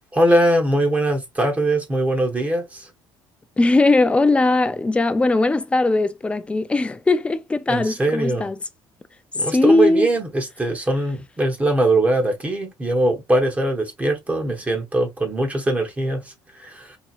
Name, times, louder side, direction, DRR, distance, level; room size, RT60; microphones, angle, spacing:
voice 1, 0.1-2.9 7.7-8.5 9.3-17.0, right 1 dB, 15° right, 1.0 m, -21 dB
voice 2, 3.6-8.6 9.5-10.1, left 2 dB, 15° left, 0.4 m, -19 dB
4.0 x 2.8 x 2.5 m
cardioid pair, 120°, 9 cm